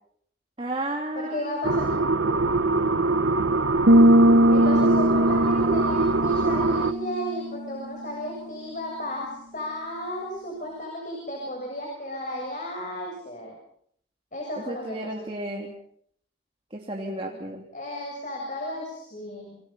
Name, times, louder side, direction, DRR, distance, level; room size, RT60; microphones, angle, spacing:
voice 1, 0.6-1.8 14.7-15.7 16.7-17.6, right 1 dB, 30° right, 0 dB, 3.0 m, -33 dB
voice 2, 1.1-1.9 4.5-13.6 14.3-15.3 17.0-17.4 17.7-19.6, left 1 dB, 40° left, 0 dB, 7.4 m, -34 dB
sound 1, 1.6-6.9, right 3 dB, 85° right, 1.1 m, -23 dB
sound 2, 3.9-7.6, equal, 55° right, 1.0 m, -20 dB
29.0 x 26.5 x 5.7 m, 0.66 s
head